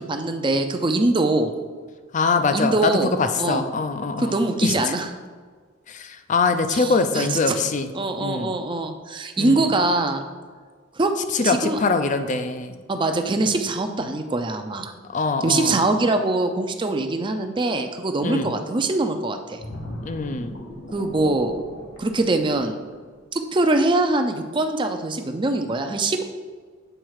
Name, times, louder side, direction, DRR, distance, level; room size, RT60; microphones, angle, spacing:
voice 1, 0.0-1.5 2.5-3.6 4.2-5.1 6.7-7.6 7.9-10.2 11.0-11.1 11.4-11.8 12.9-14.9 15.4-19.6 20.9-21.6 22.0-22.8 23.3-26.2, right 2 dB, 25° right, 6 dB, 0.5 m, -23 dB
voice 2, 2.1-4.3 4.6-4.8 5.9-7.9 8.2-8.5 9.4-9.7 11.3-12.8 15.1-15.8 18.2-18.5 20.0-20.6, left 4 dB, 40° left, 8 dB, 0.5 m, -23 dB
sound 1, 19.6-23.2 23.6-23.8, equal, 90° left, 1.5 m, -37 dB
7.8 x 4.1 x 4.8 m, 1.6 s
head